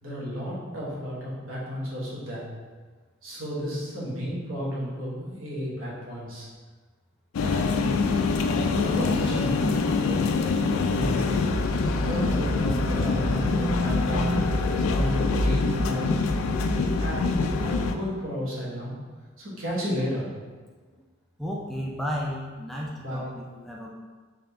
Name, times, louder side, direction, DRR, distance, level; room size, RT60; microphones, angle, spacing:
voice 1, 0.0-2.4 3.2-6.5 7.4-7.9 8.6-10.3 10.9-11.4 11.8-16.2 17.0-18.9 19.4-20.3 23.0-23.3, equal, 70° right, -6 dB, 1.3 m, -33 dB
sound 1, 7.3-17.9, left 3 dB, 85° left, 0.3 m, -25 dB
voice 2, 13.5-14.5 21.4-23.9, equal, ahead, -3 dB, 0.3 m, -32 dB
3.7 x 3.3 x 3.4 m, 1.4 s
head